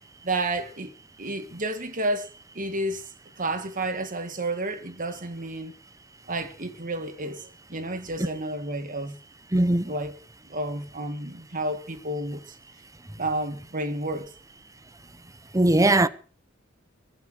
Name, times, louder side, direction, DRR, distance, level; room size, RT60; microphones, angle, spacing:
voice 1, 0.2-0.9 1.2-3.1 3.4-5.7 6.3-9.2 9.9-10.2 10.5-12.4 13.2-14.3, right 2 dB, 40° right, 2.0 m, -31 dB
voice 2, 9.5-9.9 15.5-16.1, right 1 dB, 15° right, 0.9 m, -19 dB
21.5 x 8.1 x 6.5 m
head